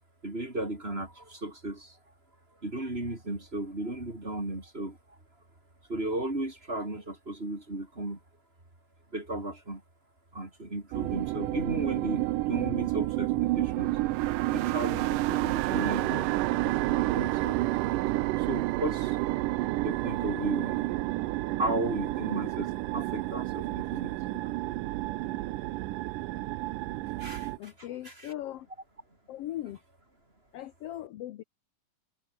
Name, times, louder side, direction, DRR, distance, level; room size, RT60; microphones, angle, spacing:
voice 1, 0.2-2.0 2.6-5.0 5.9-8.2 9.1-9.8 10.3-14.0 14.5-16.1 16.6-16.8 17.1-19.2 19.8-20.9 21.6-24.4 27.2-28.3, right 1 dB, 20° right, 4.3 m, -35 dB
sound 1, 10.9-27.6, right 17 dB, 85° right, 2.4 m, -30 dB
voice 2, 27.6-28.7 29.3-29.8 30.5-31.4, left 13 dB, 70° left, 1.5 m, -39 dB
omnidirectional pair, 3.7 m